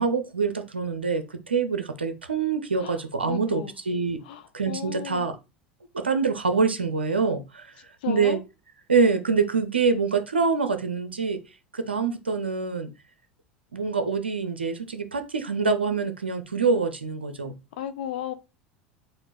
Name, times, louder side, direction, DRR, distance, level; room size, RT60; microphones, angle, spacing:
voice 1, 0.0-4.2 4.5-5.3 5.9-7.7 8.1-8.4 8.9-11.4 11.7-12.9 13.7-17.5, right 5 dB, 80° right, 0.5 m, -25 dB
voice 2, 3.3-3.8 4.2-5.3 8.0-8.4 17.7-18.3, left 11 dB, 60° left, 0.6 m, -34 dB
4.3 x 2.5 x 4.2 m
figure-of-eight pair, 75°, 6 cm